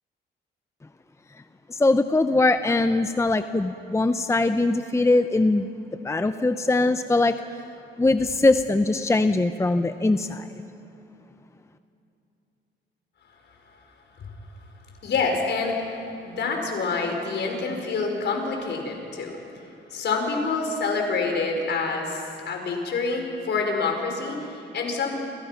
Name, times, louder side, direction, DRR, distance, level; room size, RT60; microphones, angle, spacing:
voice 1, 1.7-5.7 6.0-7.4 8.0-10.5, left 2 dB, 15° left, 9 dB, 0.8 m, -21 dB
voice 2, 15.0-19.4 19.9-25.1, left 4 dB, 60° left, 2 dB, 5.3 m, -27 dB
30.0 x 25.5 x 5.9 m, 2.7 s
cardioid pair, 90°, 20 cm